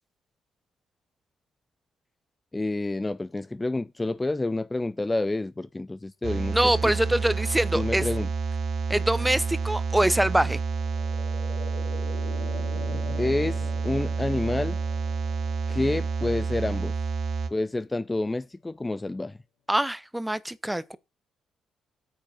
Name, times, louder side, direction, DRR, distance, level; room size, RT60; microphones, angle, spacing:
voice 1, 2.5-7.0 7.7-8.3 13.2-14.8 15.7-16.9 17.5-19.4, left 2 dB, 15° left, 0.4 m, -29 dB
sound 1, 6.2-17.5, right 5 dB, 55° right, 1.1 m, -29 dB
voice 2, 6.5-8.1 8.9-10.6 19.7-21.0, right 1 dB, 5° right, 0.7 m, -24 dB
sound 2, 8.2-17.8 18.1-18.2, left 7 dB, 85° left, 3.2 m, -45 dB
9.1 x 5.0 x 6.8 m
cardioid pair, 90°, 0 cm